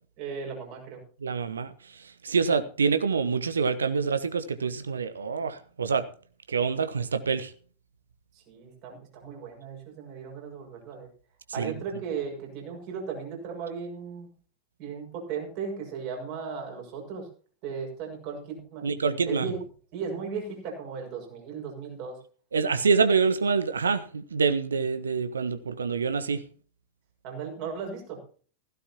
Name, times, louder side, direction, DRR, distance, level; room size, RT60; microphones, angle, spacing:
voice 1, 0.2-1.0 8.5-11.1 11.5-14.3 14.8-17.3 17.6-18.9 19.3-19.6 19.9-22.2 27.2-28.2, right 6 dB, 45° right, 6.3 m, -36 dB
voice 2, 1.2-1.7 2.2-6.0 6.5-7.5 11.6-11.7 18.8-19.4 22.5-26.4, right 5 dB, 70° right, 1.2 m, -26 dB
16.5 x 16.0 x 3.0 m
figure-of-eight pair, 90°, 0 cm